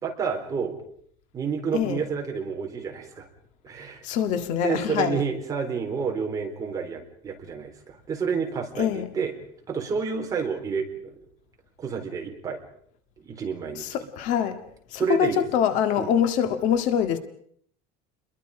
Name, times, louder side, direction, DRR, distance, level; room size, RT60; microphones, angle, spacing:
voice 1, 0.0-0.7 1.3-3.3 3.6-4.0 4.6-9.3 9.7-11.1 11.8-12.6 13.3-13.9 15.0-15.4 16.0-16.1, right 6 dB, 20° right, 3.9 m, -29 dB
voice 2, 1.7-2.0 4.0-5.2 8.8-9.1 13.7-14.6 14.9-17.2, left 9 dB, 50° left, 1.9 m, -24 dB
30.0 x 22.5 x 5.0 m
cardioid pair, 175°, 16 cm